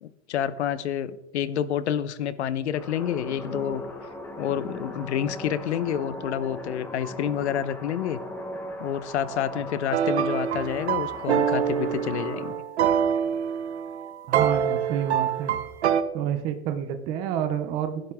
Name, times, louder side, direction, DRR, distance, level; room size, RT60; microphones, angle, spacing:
voice 1, 0.0-3.8 4.4-8.2 8.8-12.6, left 9 dB, 75° left, 15 dB, 1.1 m, -28 dB
sound 1, 2.7-12.5, left 1 dB, 5° left, 1.0 m, -38 dB
sound 2, 9.9-16.0, right 9 dB, 70° right, 1.3 m, -25 dB
voice 2, 14.3-15.5 16.1-18.0, right 9 dB, 15° right, 8 dB, 0.5 m, -29 dB
18.0 x 11.0 x 3.6 m, 0.83 s
supercardioid pair, 175°, 34 cm